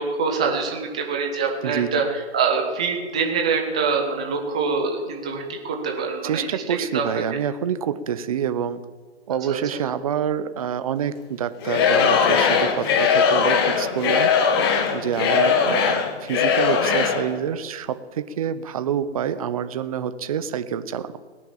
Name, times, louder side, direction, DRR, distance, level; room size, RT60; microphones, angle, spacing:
voice 1, 0.0-7.2 9.5-9.8 15.3-15.6, right 5 dB, 5° right, 2 dB, 0.4 m, -25 dB
voice 2, 1.6-2.0 6.2-8.8 9.3-14.5 14.9-21.2, right 8 dB, 30° right, 12 dB, 0.8 m, -27 dB
Singing / Crowd, 11.6-17.3, left 6 dB, 20° left, 1.1 m, -20 dB
18.0 x 10.0 x 7.2 m, 1.4 s
hypercardioid pair, 155°, 34 cm